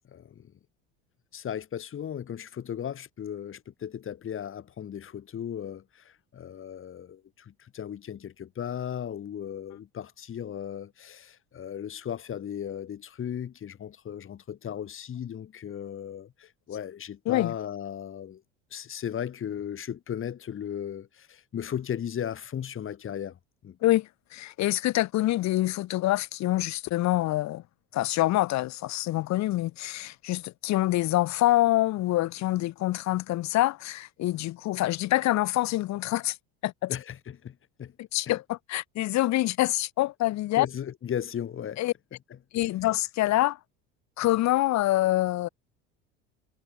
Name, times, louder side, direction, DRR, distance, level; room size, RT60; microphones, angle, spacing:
voice 1, 0.1-0.5 1.3-18.4 18.7-23.4 23.6-23.8 36.9-37.9 38.3-38.4 40.6-41.8 42.3-42.4, left 9 dB, 40° left, 3.3 m, -36 dB
voice 2, 23.8-27.6 27.9-36.3 36.6-36.9 38.1-40.7 41.8-41.9 42.5-43.6 44.2-45.5, left 16 dB, 55° left, 1.7 m, -26 dB
supercardioid pair, 100°, 33 cm